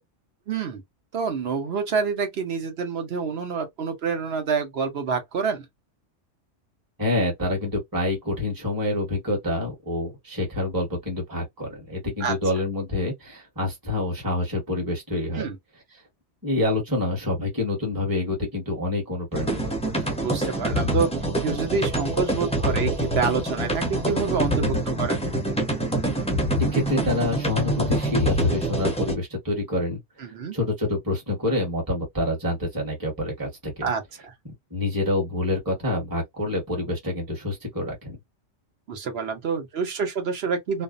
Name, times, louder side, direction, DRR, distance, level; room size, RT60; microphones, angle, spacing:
voice 1, 0.5-0.8 1.1-5.7 12.2-12.4 15.3-15.6 20.2-21.1 21.4-25.2 30.2-30.5 33.8-34.3 38.9-40.8, right 5 dB, 60° right, 1.0 m, -27 dB
voice 2, 7.0-15.5 16.4-20.1 26.7-30.0 30.5-33.9 34.7-38.2, left 2 dB, 20° right, 1.1 m, -27 dB
sound 1, 19.3-29.1, right 1 dB, 10° left, 0.4 m, -25 dB
2.6 x 2.1 x 2.4 m
omnidirectional pair, 1.2 m